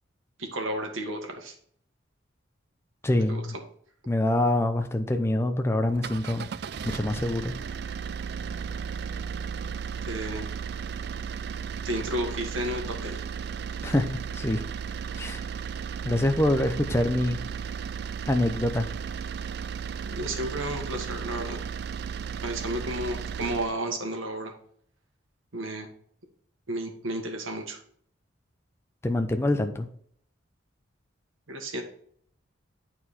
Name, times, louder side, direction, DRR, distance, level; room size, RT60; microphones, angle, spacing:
voice 1, 0.4-1.5 3.3-3.4 10.1-10.5 11.8-13.2 20.0-21.6 22.4-24.5 25.5-25.9 26.7-27.8 31.5-31.8, right 1 dB, 80° right, 3 dB, 1.6 m, -32 dB
voice 2, 3.0-3.5 4.1-6.5 6.8-7.5 13.8-14.1 14.3-14.6 15.2-15.4 16.0-17.4 18.3-18.9 29.0-29.9, left 1 dB, 15° left, 6 dB, 0.6 m, -25 dB
sound 1, 5.9-23.8, right 7 dB, 55° right, 0.3 m, -35 dB
9.0 x 4.5 x 4.3 m, 0.62 s
head